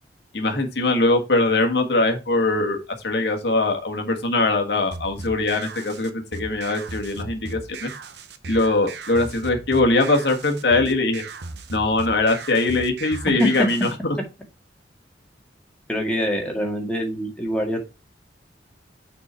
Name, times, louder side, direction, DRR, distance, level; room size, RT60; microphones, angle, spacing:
voice 1, 0.3-7.9 8.5-11.2 11.7-14.2, left 2 dB, 65° left, 3 dB, 1.5 m, -22 dB
sound 1, 4.9-13.9, right 3 dB, 65° right, 0.8 m, -37 dB
voice 2, 15.9-17.9, equal, 5° left, 1 dB, 1.8 m, -24 dB
6.7 x 4.5 x 4.4 m, 0.27 s
head